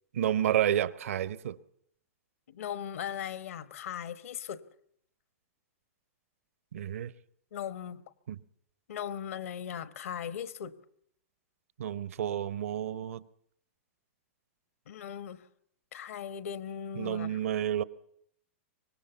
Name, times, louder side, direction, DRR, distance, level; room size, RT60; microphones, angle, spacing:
voice 1, 0.1-1.6 6.7-7.1 8.3-8.4 11.8-13.2 17.0-17.8, right 11 dB, 75° right, 0.8 m, -30 dB
voice 2, 2.5-4.6 7.5-8.0 8.9-10.7 14.9-15.5 15.9-17.4, left 9 dB, 75° left, 1.1 m, -38 dB
24.5 x 20.0 x 7.1 m
hypercardioid pair, 125°, 8 cm